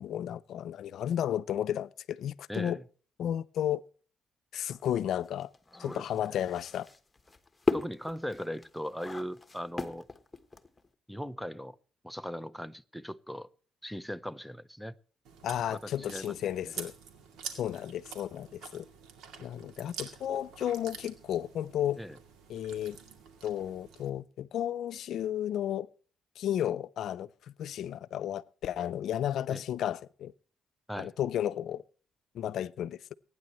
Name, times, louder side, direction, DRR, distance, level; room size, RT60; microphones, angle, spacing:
voice 1, 0.0-2.8 3.2-3.8 4.5-5.5 5.8-6.9 15.4-16.9 17.5-18.9 19.4-22.0 22.5-23.0 23.4-25.9 26.4-30.3 31.0-31.8 32.3-33.1, left 10 dB, 70° left, 0.5 m, -33 dB
voice 2, 2.5-2.8 5.8-6.4 7.7-10.1 11.1-11.8 12.0-13.5 13.8-14.9 15.7-15.8 16.1-16.3 16.6-16.7 22.0-22.2 29.5-29.6 30.9-31.1, equal, ahead, 0.6 m, -39 dB
sound 1, 4.7-10.9, left 3 dB, 15° left, 1.3 m, -36 dB
Chewing mastication, 15.2-24.1, right 6 dB, 85° right, 2.2 m, -47 dB
23.5 x 9.6 x 3.1 m
cardioid pair, 90°, 0 cm